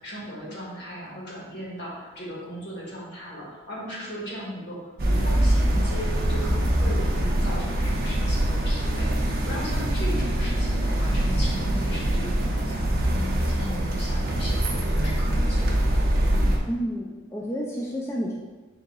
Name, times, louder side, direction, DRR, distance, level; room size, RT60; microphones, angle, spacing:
voice 1, 0.0-16.0, equal, 60° left, -6 dB, 1.4 m, -37 dB
sound 1, 5.0-16.6, right 1 dB, 50° right, 0.5 m, -24 dB
voice 2, 16.7-18.3, equal, 15° left, -4 dB, 0.3 m, -30 dB
3.9 x 2.7 x 3.8 m, 1.2 s
head